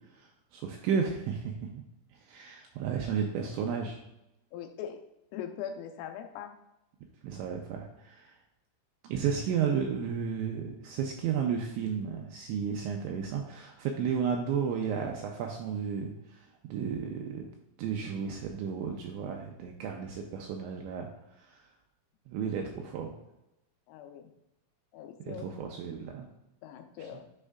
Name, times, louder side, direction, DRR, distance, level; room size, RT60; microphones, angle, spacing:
voice 1, 0.1-1.8 2.3-4.0 7.2-8.3 9.0-17.5 17.8-21.1 21.4-21.6 22.3-23.1 25.3-26.3, right 7 dB, 85° right, 2 dB, 2.7 m, -33 dB
voice 2, 4.5-5.0 5.3-6.6 23.9-24.3 24.9-25.6 26.6-27.2, left 9 dB, 85° left, 5 dB, 3.3 m, -41 dB
9.9 x 5.4 x 2.4 m, 0.90 s
omnidirectional pair, 5.9 m